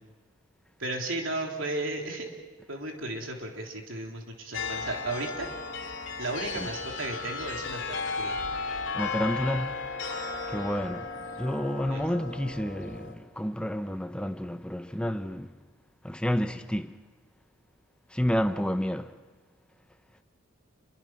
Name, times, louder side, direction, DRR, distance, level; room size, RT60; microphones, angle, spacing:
voice 1, 0.8-2.3 2.7-5.5 6.2-8.4 11.9-12.0, right 2 dB, 75° right, 3.5 m, -34 dB
sound 1, 4.5-13.1, left 4 dB, 65° left, 2.9 m, -35 dB
voice 2, 8.9-9.8 10.5-11.1 11.4-15.5 16.0-16.9 18.1-19.1, equal, 5° left, 0.8 m, -30 dB
28.0 x 22.5 x 6.0 m
head